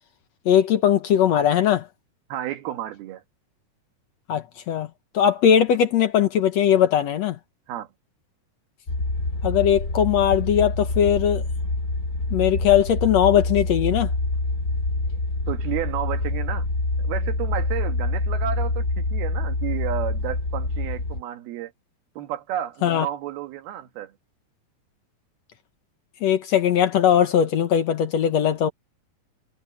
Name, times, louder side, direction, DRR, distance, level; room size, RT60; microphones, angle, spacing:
voice 1, 0.5-1.9 4.3-4.9 5.1-7.4 9.4-11.4 12.3-14.1 22.8-23.1 26.2-28.7, left 9 dB, 65° left, 1.8 m, -19 dB
voice 2, 2.3-3.2 7.7-7.9 15.5-16.7 17.0-21.7 22.2-24.1, right 12 dB, 85° right, 3.4 m, -32 dB
sound 1, 8.9-21.2, left 2 dB, 25° left, 3.9 m, -26 dB
omnidirectional pair, 4.3 m